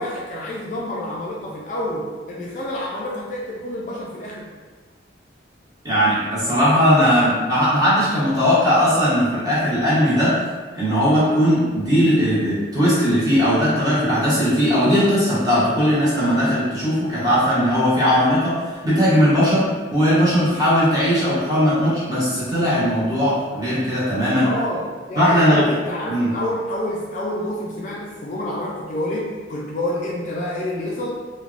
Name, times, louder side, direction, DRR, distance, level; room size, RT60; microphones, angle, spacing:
voice 1, 0.0-4.5 7.0-7.4 24.4-31.2, left 1 dB, 40° left, -3 dB, 0.3 m, -28 dB
voice 2, 5.8-10.4 10.7-24.5 25.1-25.7 26.1-26.3, equal, 20° right, -10 dB, 1.0 m, -18 dB
3.2 x 2.2 x 2.4 m, 1.4 s
head